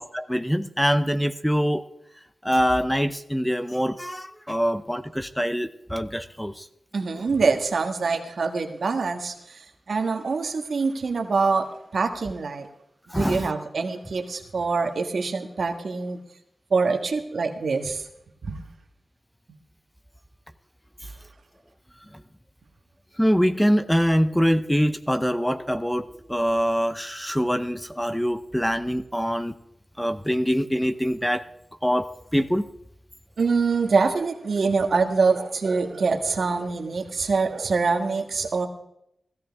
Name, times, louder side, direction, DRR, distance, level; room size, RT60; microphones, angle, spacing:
voice 1, 0.0-1.8 2.4-6.7 13.1-13.5 23.2-29.5 30.0-31.4 31.8-32.7, equal, 5° left, 10 dB, 0.7 m, -24 dB
voice 2, 6.9-11.7 11.9-12.7 13.1-16.2 16.7-18.1 18.4-18.6 33.4-38.7, right 4 dB, 70° right, 5 dB, 1.5 m, -25 dB
16.0 x 14.0 x 3.6 m, 0.79 s
cardioid pair, 70°, 0 cm